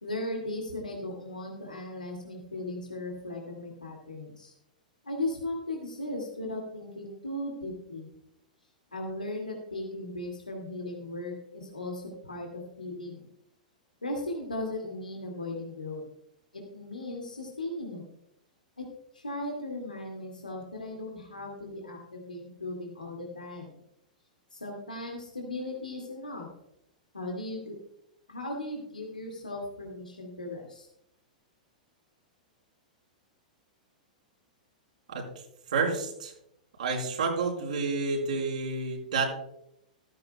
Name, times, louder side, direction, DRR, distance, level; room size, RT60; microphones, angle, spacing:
voice 1, 0.0-4.5 5.0-8.1 8.9-13.2 14.0-16.0 16.5-18.0 18.8-18.9 19.1-23.7 24.5-26.5 27.1-27.8 28.3-30.9, left 1 dB, 90° left, 0 dB, 2.2 m, -37 dB
voice 2, 35.7-36.3 36.8-39.2, right 4 dB, 70° right, -1 dB, 4.3 m, -29 dB
14.5 x 14.0 x 2.2 m, 0.78 s
figure-of-eight pair, 105°, 4 cm